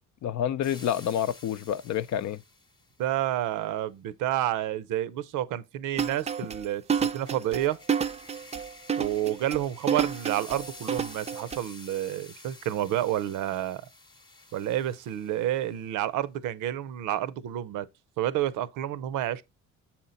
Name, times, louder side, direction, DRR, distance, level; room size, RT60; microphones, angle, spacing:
voice 1, 0.2-2.4, left 10 dB, 65° left, 0.6 m, -28 dB
sound 1, 0.6-3.0 6.9-15.8, left 2 dB, 15° left, 0.8 m, -50 dB
voice 2, 3.0-7.8 9.0-13.8 14.5-17.9 18.2-19.4, right 12 dB, 85° right, 0.6 m, -29 dB
sound 2, 6.0-11.6, right 7 dB, 20° right, 0.4 m, -29 dB
7.4 x 4.4 x 3.9 m
cardioid pair, 90°, 30 cm